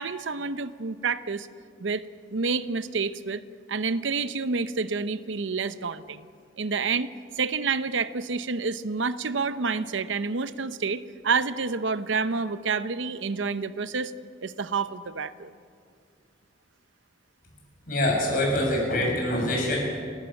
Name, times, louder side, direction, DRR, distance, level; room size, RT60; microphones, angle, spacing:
voice 1, 0.0-1.5 1.8-2.0 2.3-3.4 3.7-6.3 6.6-7.1 7.4-14.1 14.4-15.5, right 4 dB, 80° right, 13 dB, 0.8 m, -28 dB
voice 2, 17.9-19.8, left 1 dB, 45° left, -1 dB, 7.0 m, -24 dB
30.0 x 13.0 x 8.9 m, 2.2 s
head